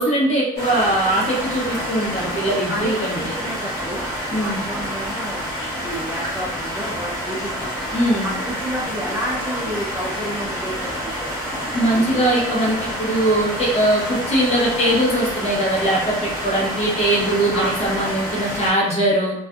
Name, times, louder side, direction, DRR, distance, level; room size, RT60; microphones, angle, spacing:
voice 1, 0.0-3.3 4.3-4.6 7.9-8.3 11.7-19.3, right 1 dB, 40° left, -5 dB, 1.0 m, -21 dB
sound 1, 0.6-18.7, equal, 15° left, 1.3 m, -28 dB
voice 2, 2.3-5.4 5.8-7.8 8.2-11.5 17.5-17.7, equal, 15° right, -5 dB, 0.4 m, -31 dB
2.4 x 2.3 x 2.4 m, 0.85 s
cardioid pair, 110°, 17 cm